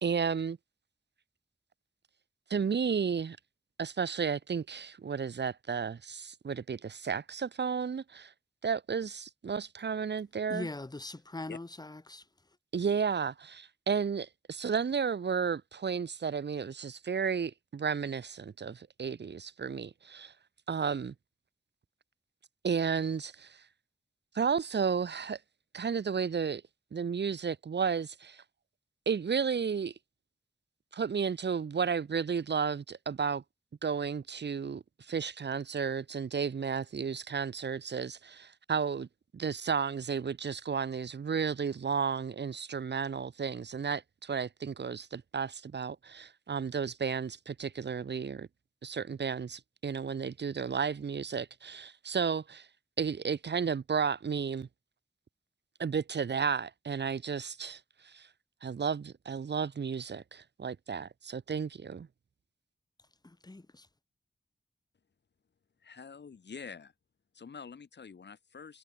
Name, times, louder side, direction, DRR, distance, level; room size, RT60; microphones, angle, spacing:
voice 1, 0.0-0.6 2.5-3.4 3.8-8.3 8.6-10.7 12.7-20.3 20.7-21.1 22.6-23.6 24.3-25.4 25.7-26.6 26.9-28.4 29.0-29.9 30.9-33.4 33.8-39.1 39.3-48.5 48.8-52.7 53.0-54.7 55.8-58.3 58.6-62.1, right 6 dB, 75° right, 1.5 m, -33 dB
voice 2, 10.5-12.2 63.2-63.9, left 2 dB, 20° left, 2.3 m, -41 dB
voice 3, 65.8-66.9 67.3-68.8, left 5 dB, 75° left, 3.5 m, -46 dB
wide cardioid pair, 125°, 18 cm